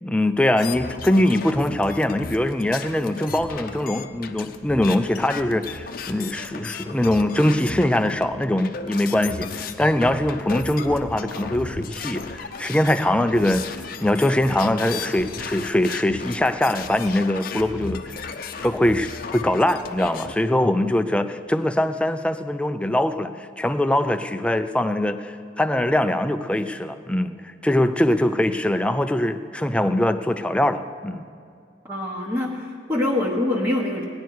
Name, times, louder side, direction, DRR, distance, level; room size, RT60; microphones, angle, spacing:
voice 1, 0.0-18.2 18.6-31.3, left 1 dB, 5° left, 9 dB, 0.4 m, -22 dB
sound 1, 0.6-20.3, left 5 dB, 50° left, 0.7 m, -35 dB
voice 2, 31.9-34.0, left 1 dB, 15° right, -5 dB, 1.2 m, -24 dB
17.0 x 10.5 x 4.6 m, 2.2 s
head